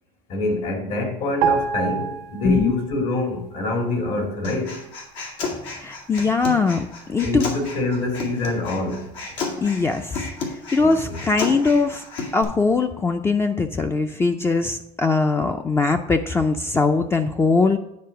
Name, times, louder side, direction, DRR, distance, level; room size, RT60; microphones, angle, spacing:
voice 1, 0.3-4.8 7.2-9.1 10.8-11.2, left 2 dB, 65° left, 2 dB, 2.4 m, -25 dB
sound 1, 1.4-3.0 3.3-3.5, right 7 dB, 85° right, 0.8 m, -26 dB
Human voice, 4.4-12.4, left 3 dB, 80° left, 2.2 m, -32 dB
voice 2, 5.8-7.6 9.6-12.0 12.3-17.8, left 4 dB, 15° left, 6 dB, 0.4 m, -21 dB
9.5 x 4.5 x 5.7 m, 0.82 s
supercardioid pair, 120°, 15 cm